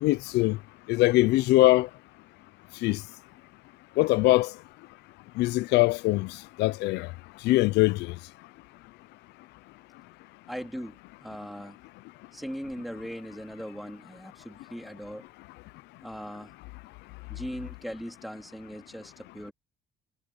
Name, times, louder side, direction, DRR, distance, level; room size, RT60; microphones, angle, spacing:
voice 1, 0.0-0.6 0.9-1.9 2.8-3.0 4.0-4.5 5.4-6.3 6.6-7.1 7.4-8.0, left 19 dB, 85° left, 0.6 m, -22 dB
voice 2, 10.5-11.8 12.3-15.3 16.0-16.5 17.3-19.5, equal, ahead, 3.5 m, -39 dB
cardioid pair, 110°, 17 cm